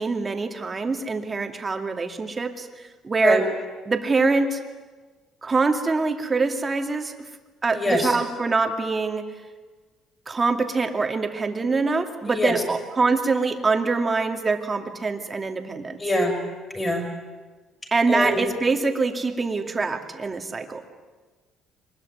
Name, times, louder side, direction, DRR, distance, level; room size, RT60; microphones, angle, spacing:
voice 1, 0.0-3.4 3.9-4.6 5.4-7.3 7.6-9.3 10.3-16.0 17.9-20.8, right 4 dB, 25° right, 5 dB, 2.3 m, -24 dB
voice 2, 7.7-8.1 12.3-12.6 16.0-16.4 16.7-17.1 18.1-18.4, left 1 dB, 15° left, 4 dB, 6.3 m, -23 dB
24.0 x 21.0 x 9.5 m, 1.3 s
cardioid pair, 120°, 0 cm